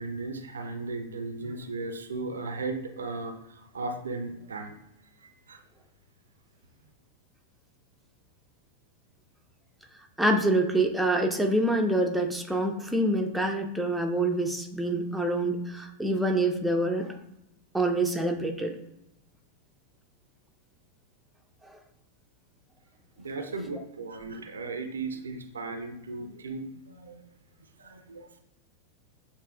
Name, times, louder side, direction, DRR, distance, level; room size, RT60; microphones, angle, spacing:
voice 1, 0.0-4.8 5.2-5.6 23.2-27.2 27.8-28.4, right 3 dB, 70° right, 7 dB, 0.4 m, -36 dB
voice 2, 10.2-17.1 17.7-18.7 23.7-23.8, right 1 dB, 5° right, 2 dB, 0.5 m, -26 dB
6.8 x 2.7 x 2.3 m, 0.84 s
figure-of-eight pair, 90°, 0 cm